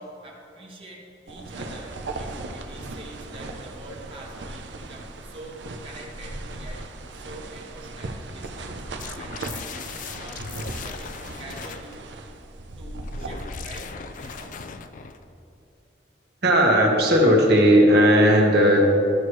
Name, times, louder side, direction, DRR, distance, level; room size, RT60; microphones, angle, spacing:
voice 1, 0.0-6.9 7.2-8.7 9.2-9.9 10.2-10.5 10.7-11.9 12.8-14.6, right 1 dB, 30° right, -2 dB, 1.3 m, -44 dB
sound 1, 1.3-14.7, right 2 dB, 90° right, 0.6 m, -38 dB
sound 2, 9.0-12.0 13.0-15.2, left 5 dB, 50° left, 0.4 m, -38 dB
voice 2, 16.4-18.9, equal, 65° right, -1 dB, 1.4 m, -16 dB
13.0 x 6.2 x 3.2 m, 2.7 s
head